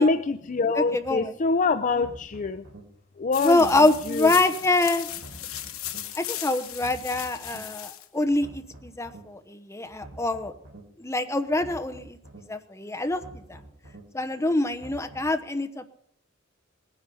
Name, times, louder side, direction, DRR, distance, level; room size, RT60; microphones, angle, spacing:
voice 1, 0.0-2.6 3.2-3.7 4.1-4.3, left 4 dB, 35° left, 10 dB, 0.5 m, -25 dB
voice 2, 0.8-1.4 3.4-5.1 6.2-10.5 11.0-12.2 12.5-13.2 13.5-13.6 14.1-15.9, left 2 dB, 15° left, 7 dB, 1.0 m, -25 dB
sound 1, 1.0-1.2 1.8-2.8 3.4-4.4 5.0-6.0 6.6-7.6 8.2-9.2 9.8-10.8 11.4-12.4 13.0-14.0 14.6-15.3, right 1 dB, 70° right, 4.0 m, -47 dB
sound 2, 3.3-8.0, left 12 dB, 90° left, 1.1 m, -37 dB
19.0 x 10.0 x 5.4 m, 0.72 s
head